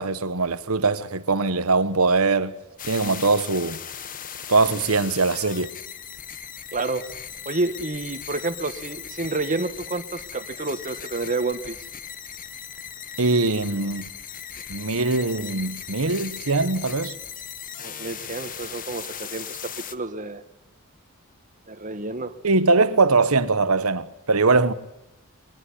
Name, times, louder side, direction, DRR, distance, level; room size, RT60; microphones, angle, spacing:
voice 1, 0.0-2.5 2.9-3.8 4.5-5.7 13.2-14.1 14.7-17.1 22.4-24.7, right 3 dB, 80° right, 1.2 m, -21 dB
sound 1, 2.8-19.9, left 8 dB, 40° left, 1.3 m, -38 dB
voice 2, 6.7-7.0 7.4-11.8 17.8-20.4 21.7-22.3, right 3 dB, 35° right, 1.7 m, -29 dB
22.5 x 20.0 x 9.9 m
head